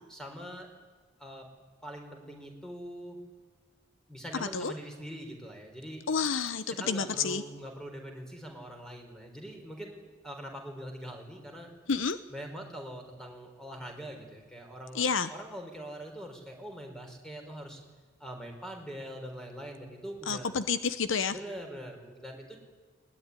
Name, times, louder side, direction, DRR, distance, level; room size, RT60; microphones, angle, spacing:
voice 1, 0.1-0.7 1.2-1.5 1.8-3.2 4.1-6.0 6.7-11.7 12.3-17.8 18.2-20.5 21.3-22.6, equal, 5° left, 3 dB, 4.4 m, -43 dB
voice 2, 6.1-7.4 11.9-12.2 14.9-15.3 20.3-21.3, left 5 dB, 70° left, 12 dB, 0.9 m, -29 dB
21.0 x 20.0 x 9.8 m, 1.4 s
head